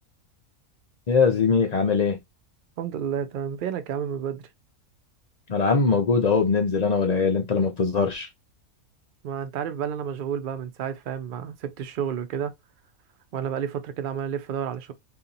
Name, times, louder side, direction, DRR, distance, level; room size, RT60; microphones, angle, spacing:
voice 1, 1.1-2.2 5.5-8.3, left 5 dB, 60° left, 0.4 m, -21 dB
voice 2, 2.8-4.4 9.2-12.5 13.3-14.9, right 8 dB, 60° right, 0.5 m, -30 dB
2.8 x 2.5 x 3.8 m
omnidirectional pair, 1.4 m